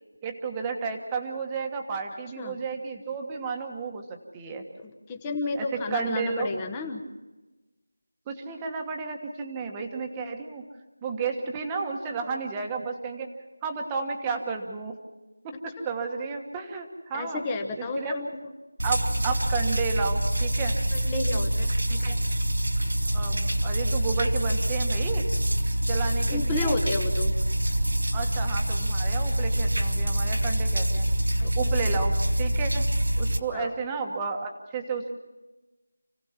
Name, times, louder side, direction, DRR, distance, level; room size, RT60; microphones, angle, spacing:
voice 1, 0.2-4.6 5.6-6.5 8.3-10.6 11.0-13.3 13.6-15.0 15.4-17.4 18.0-18.1 18.8-20.8 21.9-22.2 23.1-25.2 25.9-26.8 28.1-31.1 31.4-32.8 33.2-35.1, right 5 dB, 10° right, 3 dB, 1.4 m, -32 dB
voice 2, 4.8-7.0 17.1-18.5 20.9-21.7 26.3-27.3 31.4-31.7 33.5-33.7, left 3 dB, 10° left, 3 dB, 1.1 m, -32 dB
sound 1, 18.8-33.4, right 1 dB, 80° right, 3.6 m, -25 dB
29.0 x 17.5 x 5.9 m, 1.1 s
figure-of-eight pair, 175°, 0 cm